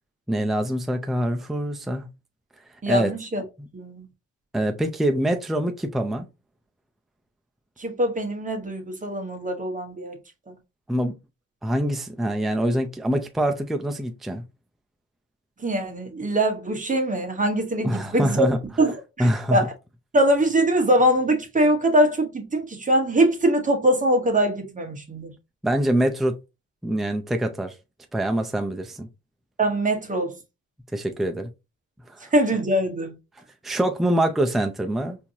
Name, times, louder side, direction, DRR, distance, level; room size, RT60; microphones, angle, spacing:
voice 1, 0.3-2.1 2.9-3.1 3.6-3.7 4.5-6.3 10.9-11.1 11.6-14.4 17.8-18.6 19.2-19.6 25.6-26.3 26.8-27.7 28.1-29.1 30.9-31.5 32.1-32.2 33.6-35.2, right 1 dB, ahead, 0.5 m, -24 dB
voice 2, 2.8-3.4 3.7-4.0 7.8-10.2 15.6-18.4 18.8-19.7 20.1-25.3 29.6-30.3 32.3-33.2, right 1 dB, 25° right, 1.2 m, -22 dB
4.3 x 2.8 x 2.8 m
cardioid pair, 90°, 30 cm